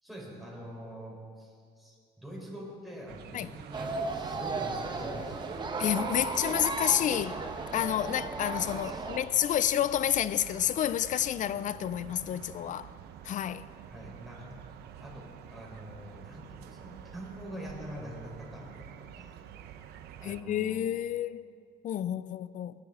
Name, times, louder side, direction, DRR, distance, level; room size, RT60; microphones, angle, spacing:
voice 1, 0.0-5.6 8.8-9.1 13.9-14.6 15.0-19.4 20.2-20.9, equal, ahead, 4.2 m, -45 dB
sound 1, 3.1-20.4, right 9 dB, 75° right, 0.8 m, -48 dB
sound 2, 3.7-9.2, right 3 dB, 25° right, 1.2 m, -35 dB
voice 2, 5.8-7.4 7.7-12.9 13.2-13.7 20.2-21.5 21.8-22.7, left 11 dB, 50° left, 0.5 m, -29 dB
19.5 x 10.5 x 3.8 m
cardioid pair, 110°, 17 cm